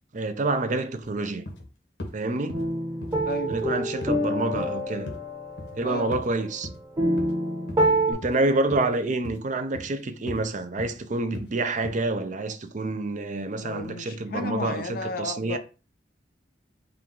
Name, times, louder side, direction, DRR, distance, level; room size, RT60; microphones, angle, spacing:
voice 1, 0.1-1.4 2.1-2.7 3.5-5.1 5.8-6.7 8.1-15.6, right 2 dB, 45° right, 0.6 m, -28 dB
sound 1, 1.0-1.1 1.5-1.7 2.0-2.2 2.5-2.7 3.0-3.2 3.5-3.7 4.0-4.2 4.5-4.7 5.1-5.2 5.6-5.8 6.1-6.3 6.6-6.8 7.2-7.3 7.7-7.9 8.2-8.4 8.7-8.9 9.2-9.5 9.7-9.9 10.3-10.5 10.8-11.0 11.3-11.5 11.8-12.0, left 1 dB, 85° left, 1.1 m, -38 dB
sound 2, 2.5-8.1, right 1 dB, 20° right, 1.1 m, -27 dB
voice 2, 3.2-3.6 5.8-6.1 13.6-15.6, left 3 dB, 55° left, 0.5 m, -33 dB
4.5 x 2.4 x 3.7 m
head